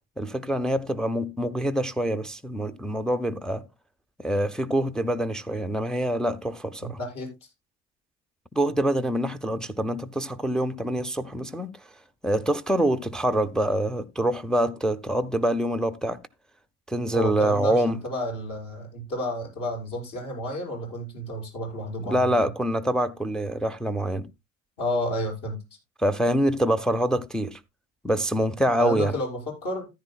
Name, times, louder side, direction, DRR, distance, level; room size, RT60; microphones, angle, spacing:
voice 1, 0.2-3.6 4.2-7.0 8.5-11.7 12.2-16.2 16.9-18.0 22.1-24.3 26.0-27.6 28.0-29.1, right 1 dB, ahead, 0.6 m, -25 dB
voice 2, 6.8-7.5 17.1-22.3 24.8-25.6 28.8-29.9, left 1 dB, 50° left, 6.3 m, -31 dB
14.0 x 10.5 x 2.2 m
figure-of-eight pair, 65°, 39 cm